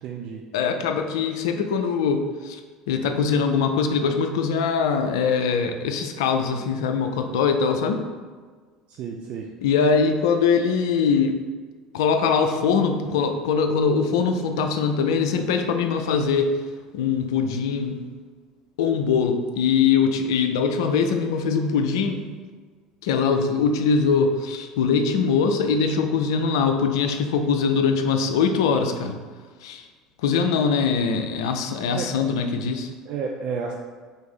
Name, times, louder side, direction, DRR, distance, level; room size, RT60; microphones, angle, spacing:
voice 1, 0.0-0.4 8.9-9.5 31.9-32.1 33.1-33.7, right 5 dB, 50° right, 0 dB, 0.3 m, -31 dB
voice 2, 0.5-2.6 2.9-8.0 9.6-11.4 11.9-16.6 16.9-18.0 18.8-22.3 23.0-29.2 29.6-29.9 30.2-32.9, left 5 dB, 65° left, 6 dB, 0.3 m, -22 dB
3.4 x 2.5 x 4.0 m, 1.5 s
figure-of-eight pair, 65°, 3 cm